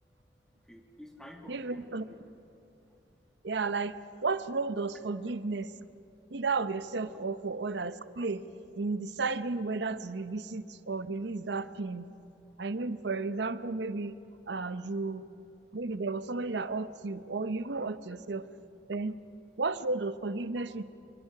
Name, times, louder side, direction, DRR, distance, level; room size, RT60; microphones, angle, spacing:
voice 1, 0.0-2.2 2.6-3.0 6.2-6.3 14.9-15.0 20.6-20.7, equal, 5° left, 3 dB, 1.9 m, -52 dB
voice 2, 1.5-2.0 3.4-5.7 6.3-8.4 8.8-12.1 12.6-14.2 14.5-15.2 15.7-18.5 18.9-19.1 19.6-20.8, right 3 dB, 65° right, 13 dB, 0.8 m, -33 dB
24.5 x 24.0 x 5.8 m, 2.8 s
head